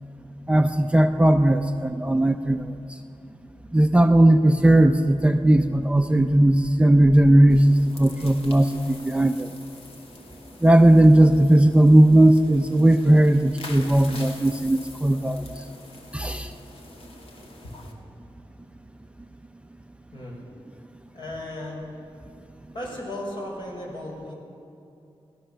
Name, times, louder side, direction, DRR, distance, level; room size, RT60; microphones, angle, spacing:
voice 1, 0.5-2.7 3.7-9.5 10.6-15.4 16.1-16.5, right 1 dB, 10° right, 6 dB, 0.6 m, -17 dB
sound 1, 7.5-17.9, left 2 dB, 80° left, 2.5 m, -45 dB
voice 2, 21.1-21.9 22.7-24.3, left 1 dB, 55° left, -2 dB, 5.6 m, -35 dB
23.0 x 16.5 x 6.9 m, 2.7 s
wide cardioid pair, 155°, 10 cm